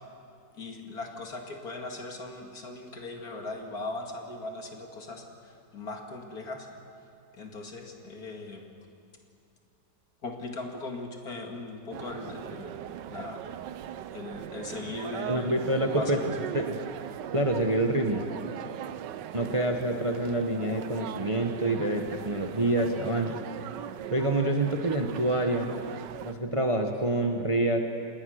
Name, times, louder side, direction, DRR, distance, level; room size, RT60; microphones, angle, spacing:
voice 1, 0.5-6.7 7.3-8.7 10.2-13.4 14.1-16.3 18.6-18.8, left 2 dB, 55° left, 3 dB, 2.6 m, -39 dB
sound 1, 11.9-26.3, right 11 dB, 75° right, 1.3 m, -40 dB
voice 2, 15.3-16.2 16.5-16.8 17.3-18.3 19.3-23.4 24.1-25.7 26.2-27.9, right 1 dB, 20° right, 4 dB, 1.0 m, -27 dB
27.0 x 19.5 x 6.5 m, 2.5 s
omnidirectional pair, 1.9 m